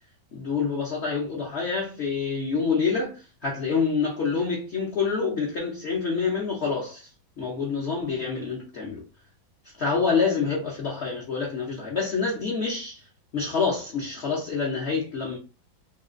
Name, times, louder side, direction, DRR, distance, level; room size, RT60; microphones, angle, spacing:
voice 1, 0.3-7.1 7.4-9.0 9.8-13.0 13.3-15.4, left 5 dB, 65° left, 0.6 m, -27 dB
3.2 x 2.9 x 2.4 m
omnidirectional pair, 2.2 m